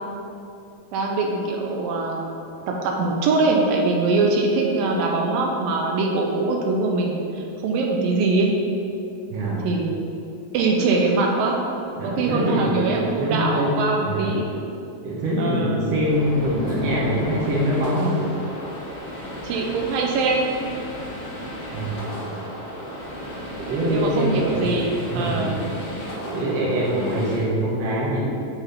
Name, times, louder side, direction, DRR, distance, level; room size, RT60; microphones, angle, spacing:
voice 1, 0.9-2.3 2.7-8.5 9.6-9.9 10.5-11.6 12.0-14.5 15.4-15.8 19.4-20.5 23.9-25.6, right 3 dB, 80° right, 0 dB, 2.3 m, -22 dB
voice 2, 9.3-9.6 12.0-13.7 14.0-14.3 15.0-18.3 21.7-22.3 23.6-24.7 25.0-25.6 26.2-28.2, equal, 60° right, -5 dB, 1.8 m, -24 dB
sound 1, 16.0-27.4, equal, 50° left, 2.1 m, -34 dB
8.8 x 4.1 x 4.1 m, 2.7 s
omnidirectional pair, 4.3 m